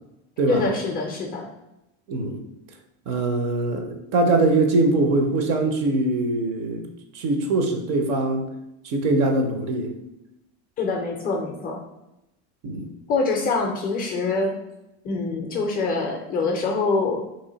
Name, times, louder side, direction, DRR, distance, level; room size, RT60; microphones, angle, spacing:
voice 1, 0.5-1.5 10.8-11.8 13.1-14.5 15.0-17.2, left 3 dB, 25° left, 1 dB, 0.4 m, -25 dB
voice 2, 2.1-2.4 3.1-6.9 7.1-8.5 8.8-9.9 12.6-12.9, right 2 dB, 45° right, 5 dB, 0.5 m, -22 dB
3.0 x 2.4 x 3.9 m, 0.90 s
supercardioid pair, 150°, 36 cm